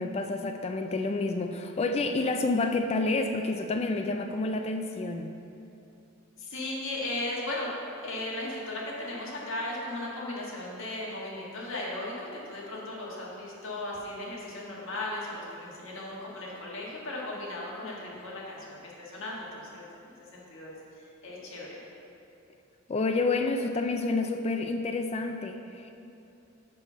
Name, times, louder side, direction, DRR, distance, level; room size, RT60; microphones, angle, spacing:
voice 1, 0.0-5.3 22.9-25.9, left 3 dB, 30° left, 5 dB, 0.3 m, -29 dB
voice 2, 6.4-7.7 8.0-21.8, left 1 dB, 65° left, -5 dB, 1.6 m, -37 dB
5.6 x 5.4 x 6.0 m, 2.8 s
head